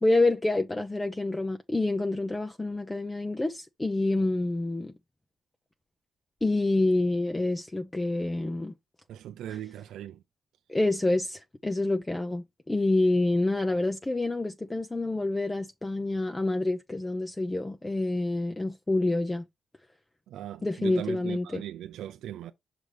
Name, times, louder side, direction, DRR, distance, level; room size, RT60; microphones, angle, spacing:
voice 1, 0.0-4.9 6.4-8.7 10.7-19.4 20.6-21.6, left 2 dB, 15° left, 0.7 m, -27 dB
voice 2, 9.1-10.2 20.3-22.5, right 11 dB, 85° right, 0.5 m, -39 dB
6.2 x 5.0 x 3.4 m
cardioid pair, 75°, 0 cm